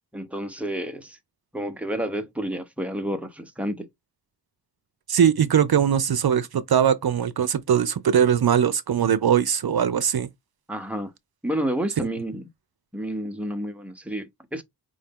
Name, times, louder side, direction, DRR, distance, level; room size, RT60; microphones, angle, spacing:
voice 1, 0.1-1.2 1.5-3.9 10.7-11.1 11.4-12.5 12.9-14.6, right 1 dB, 5° right, 0.9 m, -30 dB
voice 2, 5.1-10.3, right 8 dB, 60° right, 0.6 m, -21 dB
5.0 x 2.7 x 3.6 m
cardioid pair, 55°, 41 cm